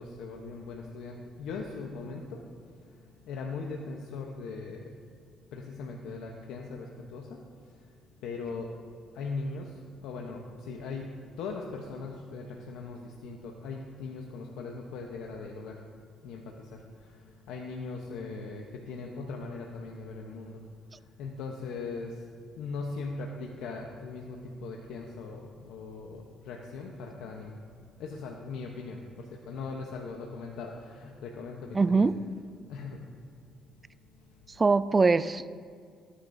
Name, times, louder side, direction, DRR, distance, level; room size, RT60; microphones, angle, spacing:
voice 1, 0.0-2.4 2.8-2.9 3.2-5.0 5.5-7.4 8.2-8.7 9.1-15.8 16.2-20.6 21.2-22.2 22.6-27.6 28.0-32.1 32.7-33.1, left 4 dB, 85° left, 1 dB, 0.9 m, -39 dB
voice 2, 31.7-32.2 34.6-35.5, right 4 dB, 30° right, 16 dB, 0.3 m, -22 dB
18.0 x 9.8 x 2.7 m, 2.1 s
cardioid pair, 90°, 0 cm